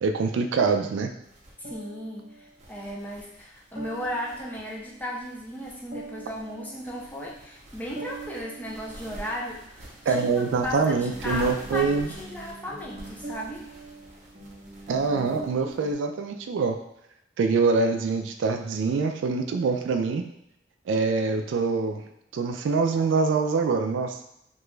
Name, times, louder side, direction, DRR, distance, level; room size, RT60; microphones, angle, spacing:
voice 1, 0.0-1.1 10.1-12.1 14.9-16.8 17.4-20.2 20.9-22.0 22.3-24.2, right 4 dB, 80° right, 5 dB, 0.3 m, -24 dB
sound 1, 1.2-15.9, right 2 dB, 40° right, 0.6 m, -43 dB
voice 2, 1.6-10.2 10.6-13.7, equal, 10° left, -3 dB, 0.5 m, -36 dB
2.9 x 2.3 x 3.1 m, 0.79 s
head